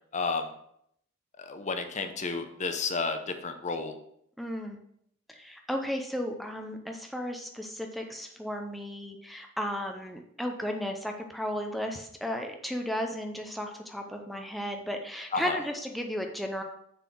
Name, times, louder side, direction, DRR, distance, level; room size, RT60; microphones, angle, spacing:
voice 1, 0.1-0.5 1.4-3.9 15.3-15.6, left 4 dB, 35° left, 7 dB, 0.7 m, -31 dB
voice 2, 4.4-4.8 5.3-16.6, equal, ahead, 3 dB, 0.6 m, -34 dB
6.8 x 4.1 x 6.2 m, 0.71 s
head